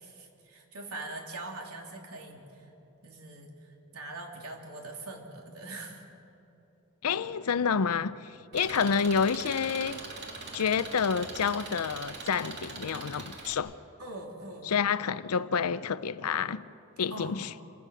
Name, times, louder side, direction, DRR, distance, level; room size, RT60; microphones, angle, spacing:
voice 1, 0.0-2.7 3.0-6.1 14.0-14.8 17.1-17.5, right 2 dB, 85° right, 3.2 m, -42 dB
voice 2, 7.0-10.0 10.5-13.8 14.6-16.6 17.0-17.5, left 6 dB, 85° left, 0.6 m, -29 dB
Engine, 8.5-13.5, right 3 dB, 50° right, 2.6 m, -42 dB
28.5 x 24.5 x 6.4 m
head